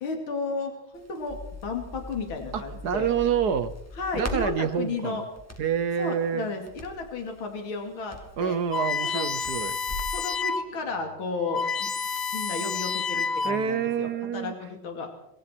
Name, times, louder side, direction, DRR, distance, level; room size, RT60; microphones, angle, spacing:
voice 1, 0.0-1.4 1.6-3.1 4.0-5.2 6.0-8.6 9.1-9.3 10.1-11.9 12.3-15.1, left 3 dB, 70° left, 3 dB, 3.4 m, -33 dB
Crackle, 0.9-10.2, left 1 dB, 5° left, 3.0 m, -41 dB
voice 2, 2.5-3.8 4.1-5.2 5.6-6.5 8.4-9.8 13.4-14.5, right 8 dB, 60° right, 13 dB, 1.2 m, -27 dB
sound 1, 8.7-10.7 11.1-11.2 11.4-13.8, left 5 dB, 45° left, 0.8 m, -29 dB
25.5 x 23.0 x 4.5 m, 0.81 s
omnidirectional pair, 2.3 m